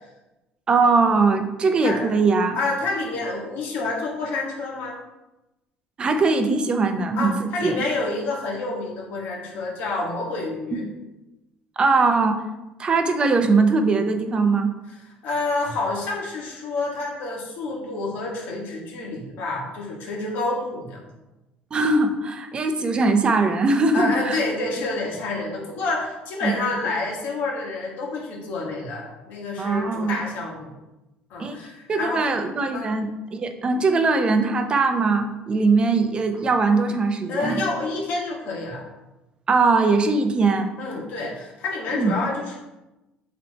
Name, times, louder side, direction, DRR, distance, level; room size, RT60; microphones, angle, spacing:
voice 1, 0.7-2.6 6.0-7.7 10.7-10.9 11.8-12.4 12.8-14.7 21.7-24.4 26.4-26.5 29.6-30.1 31.4-31.6 31.9-37.6 39.5-40.7 41.9-42.1, right 3 dB, 30° right, 7 dB, 0.6 m, -21 dB
voice 2, 1.8-2.1 2.6-5.0 7.1-10.8 15.1-21.0 23.9-30.7 31.3-32.3 32.7-32.9 37.3-38.8 40.8-42.6, left 3 dB, 65° left, -2 dB, 1.7 m, -28 dB
7.6 x 3.1 x 4.1 m, 1.0 s
cardioid pair, 130°, 3 cm